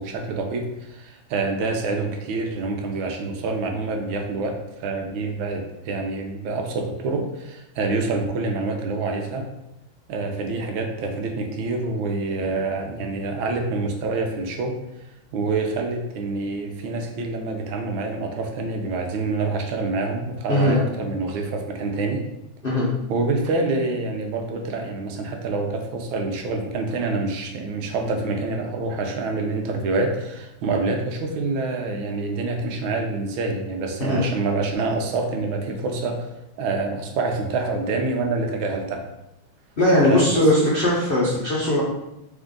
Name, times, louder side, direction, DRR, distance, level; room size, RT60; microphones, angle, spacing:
voice 1, 0.0-9.5 10.1-14.7 15.3-22.2 23.1-36.3 36.6-39.0 40.0-40.7, right 3 dB, 80° right, 3 dB, 1.5 m, -26 dB
voice 2, 39.8-41.8, left 1 dB, 85° left, -6 dB, 0.4 m, -19 dB
3.6 x 3.6 x 3.7 m, 0.90 s
omnidirectional pair, 2.3 m